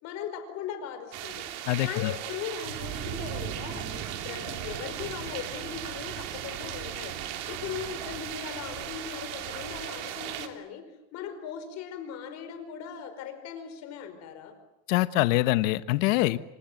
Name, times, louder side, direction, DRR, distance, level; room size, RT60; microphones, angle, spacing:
voice 1, 0.0-7.2 7.5-10.8 11.1-14.5, left 8 dB, 40° left, 8 dB, 5.0 m, -39 dB
sound 1, 1.1-10.5, right 10 dB, 55° right, 3.0 m, -36 dB
voice 2, 1.7-2.1 14.9-16.4, left 17 dB, 70° left, 12 dB, 1.3 m, -24 dB
27.0 x 25.5 x 7.9 m, 0.86 s
cardioid pair, 170°, 40 cm